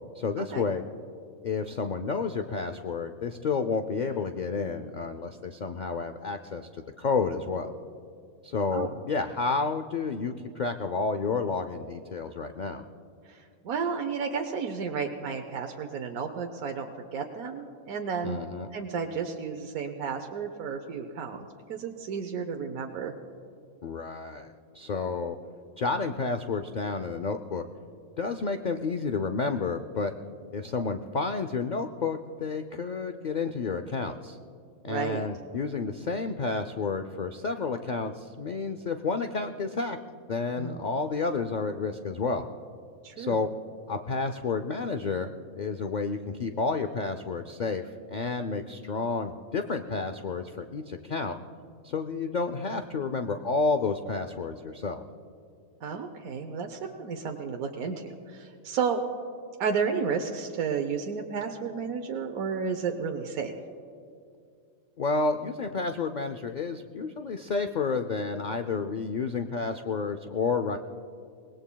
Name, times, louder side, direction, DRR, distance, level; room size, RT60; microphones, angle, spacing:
voice 1, 0.1-0.8 1.4-7.7 8.4-12.8 18.2-18.7 23.8-25.4 25.8-27.6 28.2-30.1 30.5-34.4 34.8-40.0 40.3-42.4 43.2-43.5 43.9-51.4 51.8-55.0 65.0-70.8, left 4 dB, 85° left, 7 dB, 0.4 m, -30 dB
voice 2, 13.3-18.4 18.7-23.1 34.9-35.3 40.6-40.8 43.0-43.4 55.8-59.0 59.6-63.5, right 6 dB, 80° right, 4 dB, 1.3 m, -32 dB
24.5 x 19.0 x 2.3 m, 2.4 s
omnidirectional pair, 1.5 m